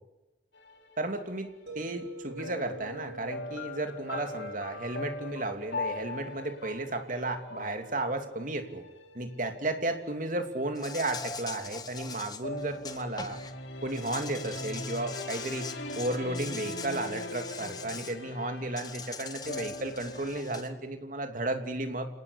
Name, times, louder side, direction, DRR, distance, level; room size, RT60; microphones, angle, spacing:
sound 1, 0.5-1.6 2.3-10.5 12.4-20.4, left 2 dB, 90° left, 3.5 m, -41 dB
voice 1, 1.0-1.5 1.7-8.8 9.1-13.4 13.8-15.7 16.0-22.1, right 2 dB, 50° right, 6 dB, 3.0 m, -33 dB
sound 2, 1.7-16.6, right 2 dB, 80° right, 6.9 m, -51 dB
Insect, 10.8-13.5 13.9-18.2 18.8-20.7, left 5 dB, 25° left, 1.7 m, -42 dB
28.5 x 18.5 x 8.3 m, 1.0 s
head